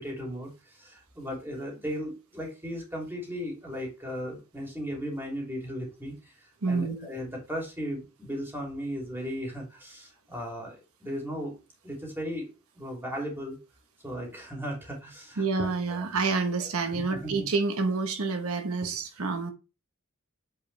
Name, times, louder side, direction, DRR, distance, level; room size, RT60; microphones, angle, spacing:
voice 1, 0.0-11.5 11.8-12.5 12.7-13.6 14.0-16.0 16.6-16.7 17.1-17.5, equal, 10° right, 2.8 m, -36 dB
voice 2, 6.6-7.1 15.4-19.5, right 4 dB, 75° right, 1.0 m, -28 dB
8.3 x 4.9 x 3.3 m
head